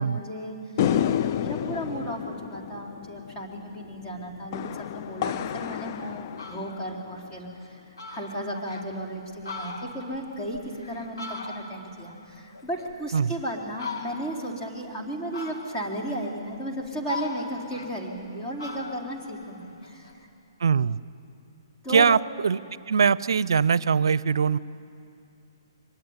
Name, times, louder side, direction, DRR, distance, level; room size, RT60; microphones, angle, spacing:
voice 1, 0.0-20.3 21.8-22.1, right 1 dB, 20° left, -2 dB, 4.0 m, -35 dB
sound 1, 0.8-7.3, left 10 dB, 45° left, 0.5 m, -30 dB
Fowl, 5.8-5.9 6.2-6.8 7.3-7.4 7.7-7.8 8.0-8.9 9.3-11.9 12.3-13.3 13.7-14.4 15.3-16.0 16.5-18.3 18.6-20.2, left 3 dB, 85° left, 2.8 m, -39 dB
voice 2, 20.6-21.0 21.9-22.6 22.9-24.6, right 6 dB, 70° right, 20 dB, 0.6 m, -22 dB
23.5 x 20.5 x 9.8 m, 2.6 s
hypercardioid pair, 135°, 2 cm